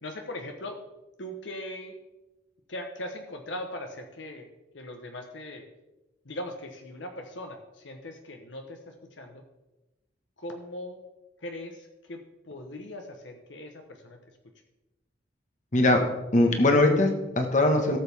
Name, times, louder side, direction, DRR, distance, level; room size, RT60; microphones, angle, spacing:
voice 1, 0.0-0.8 1.2-1.9 2.7-4.5 4.7-5.7 6.2-9.4 10.4-11.0 11.4-12.2 12.4-14.2, left 1 dB, 75° left, 4 dB, 1.2 m, -39 dB
voice 2, 15.7-16.0 16.3-18.0, left 2 dB, 40° left, 4 dB, 1.5 m, -21 dB
17.0 x 7.2 x 3.6 m, 1.0 s
head